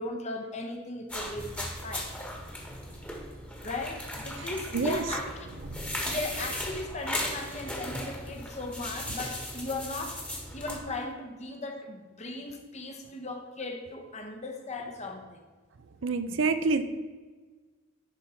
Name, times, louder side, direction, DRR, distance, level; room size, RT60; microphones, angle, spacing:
voice 1, 0.0-2.1 3.6-5.3 6.0-10.2 10.5-15.4, left 2 dB, 35° left, 3 dB, 1.1 m, -37 dB
sound 1, 1.1-10.8, left 1 dB, 5° left, 1.4 m, -37 dB
voice 2, 4.4-5.0 5.6-6.1 16.0-16.8, right 4 dB, 70° right, 10 dB, 0.6 m, -29 dB
10.5 x 5.4 x 4.4 m, 1.4 s
head